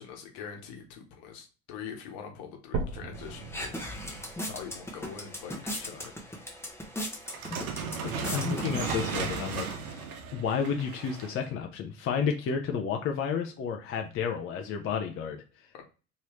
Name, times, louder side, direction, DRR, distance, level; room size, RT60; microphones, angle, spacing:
voice 1, 0.0-3.8 4.5-6.1, left 7 dB, 60° left, 3 dB, 1.1 m, -43 dB
sound 1, 2.7-6.7 7.3-7.4 8.0-8.1 8.4-8.5 9.3-9.4, right 3 dB, 35° right, 0.7 m, -40 dB
sound 2, 3.1-10.0, equal, 5° left, 0.9 m, -38 dB
sound 3, 7.3-11.4, right 5 dB, 80° right, 0.7 m, -35 dB
voice 2, 8.2-9.7 10.3-15.4, left 6 dB, 30° left, 4 dB, 0.5 m, -31 dB
3.0 x 2.8 x 3.0 m, 0.33 s
hypercardioid pair, 75°, 43 cm